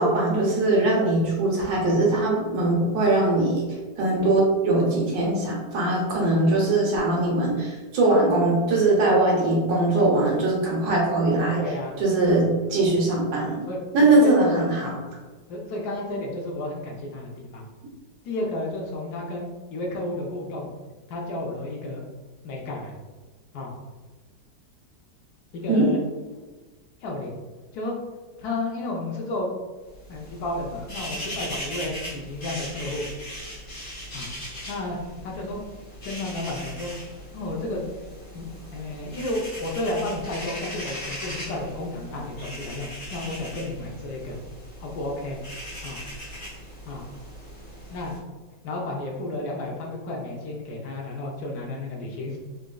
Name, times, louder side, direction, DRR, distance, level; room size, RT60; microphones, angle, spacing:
voice 1, 0.0-3.7 4.0-11.6 12.0-13.6 13.9-14.9 25.7-25.9, right 2 dB, 85° right, -3 dB, 1.5 m, -21 dB
voice 2, 11.5-12.0 13.6-14.4 14.8-15.0 15.5-17.7 18.2-20.7 21.1-22.0 22.4-22.9 23.5-23.7 25.5-26.0 27.0-27.4 27.7-28.0 28.4-29.5 30.1-33.1 34.1-34.3 34.7-35.6 36.0-36.9 37.3-37.9 38.3-44.4 44.8-45.4 45.8-46.0 46.9-47.0 47.9-48.1 48.6-52.4, left 2 dB, 70° left, -2 dB, 1.0 m, -32 dB
sound 1, 29.9-48.2, equal, 55° left, 1.2 m, -39 dB
3.9 x 2.3 x 2.2 m, 1.3 s
omnidirectional pair, 1.9 m